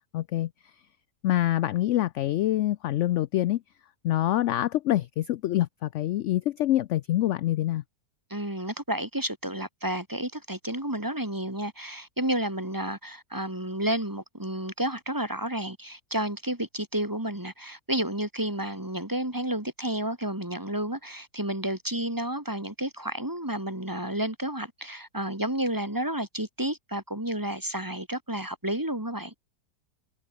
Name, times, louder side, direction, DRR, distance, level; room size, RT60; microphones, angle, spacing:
voice 1, 0.1-0.5 1.2-3.6 4.0-7.8, left 14 dB, 70° left, 0.7 m, -25 dB
voice 2, 8.3-29.3, right 1 dB, 10° right, 2.5 m, -31 dB
omnidirectional pair, 1.7 m